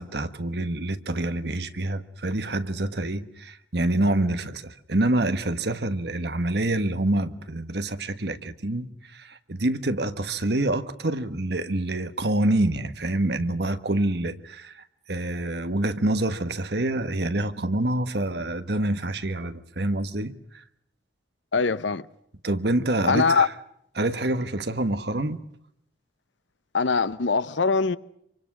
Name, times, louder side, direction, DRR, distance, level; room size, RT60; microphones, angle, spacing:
voice 1, 0.0-20.3 22.4-23.5 23.9-25.4, right 1 dB, 60° right, 1.4 m, -26 dB
voice 2, 21.5-22.1 23.1-23.5 26.7-28.0, left 4 dB, 85° left, 0.9 m, -22 dB
26.5 x 25.0 x 6.2 m
head